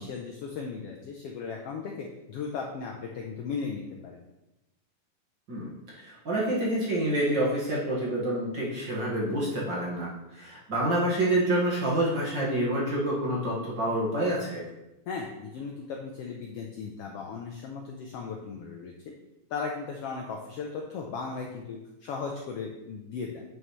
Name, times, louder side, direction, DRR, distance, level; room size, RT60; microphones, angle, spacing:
voice 1, 0.0-4.2 15.1-19.1 19.5-23.4, left 5 dB, 80° left, 1 dB, 1.4 m, -37 dB
voice 2, 6.0-14.6, right 1 dB, 40° right, -6 dB, 2.0 m, -27 dB
9.1 x 6.4 x 3.2 m, 0.97 s
omnidirectional pair, 3.5 m